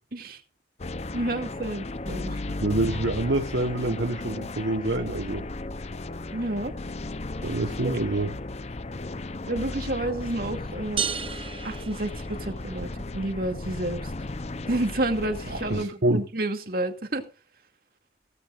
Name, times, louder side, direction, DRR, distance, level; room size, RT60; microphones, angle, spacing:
sound 1, 0.8-15.8, left 2 dB, 35° left, 0.7 m, -35 dB
voice 1, 1.1-2.4 6.3-6.7 7.4-7.5 7.8-8.0 9.5-11.0 11.6-14.1 14.7-17.2, right 1 dB, 50° right, 2.4 m, -30 dB
voice 2, 2.6-5.4 7.4-8.3 15.5-16.2, right 2 dB, 70° right, 1.3 m, -26 dB
sound 2, 11.0-12.8, right 7 dB, 30° right, 0.8 m, -33 dB
17.0 x 15.0 x 2.5 m
head